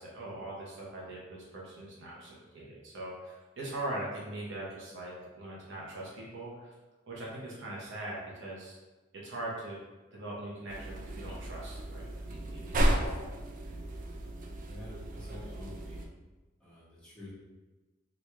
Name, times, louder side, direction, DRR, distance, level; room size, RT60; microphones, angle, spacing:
voice 1, 0.0-6.7 7.1-8.8 9.1-9.8 10.1-13.2, right 1 dB, 60° right, -4 dB, 0.8 m, -41 dB
sound 1, 10.7-16.1, equal, 40° right, 0.4 m, -33 dB
voice 2, 14.6-16.0 16.6-17.3, left 1 dB, 5° left, -11 dB, 1.3 m, -48 dB
3.0 x 2.6 x 3.3 m, 1.2 s
head